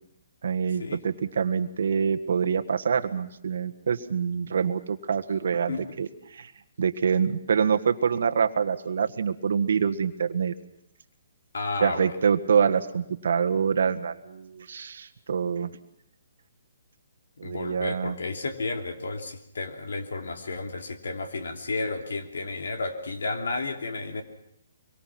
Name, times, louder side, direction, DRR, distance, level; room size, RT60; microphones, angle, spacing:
voice 1, 0.4-6.5 6.8-10.5 11.8-15.7 17.4-18.2, right 6 dB, 70° right, 8 dB, 1.6 m, -26 dB
voice 2, 11.5-12.1 17.4-24.2, left 3 dB, 80° left, 5 dB, 3.1 m, -32 dB
24.5 x 23.5 x 6.0 m, 0.75 s
hypercardioid pair, 150°, 0 cm